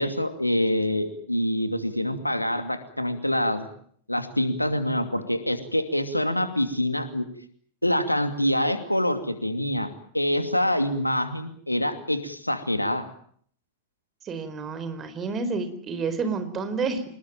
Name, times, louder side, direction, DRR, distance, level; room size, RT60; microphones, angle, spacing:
voice 1, 0.0-3.7 4.1-7.3 7.8-9.9 10.1-13.1, left 1 dB, 85° left, 9 dB, 2.6 m, -25 dB
voice 2, 14.2-17.0, right 4 dB, 25° right, 10 dB, 4.6 m, -29 dB
26.0 x 21.0 x 8.9 m, 0.62 s
figure-of-eight pair, 90°, 0 cm